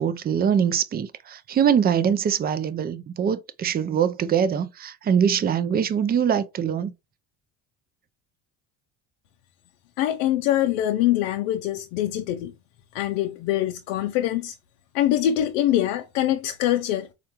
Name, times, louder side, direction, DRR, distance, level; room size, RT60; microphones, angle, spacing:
voice 1, 0.0-6.9, right 8 dB, 25° right, 0.5 m, -23 dB
voice 2, 10.0-12.5 12.9-14.6 14.9-17.1, left 12 dB, 85° left, 0.5 m, -24 dB
4.3 x 2.4 x 2.9 m
supercardioid pair, 105°, 37 cm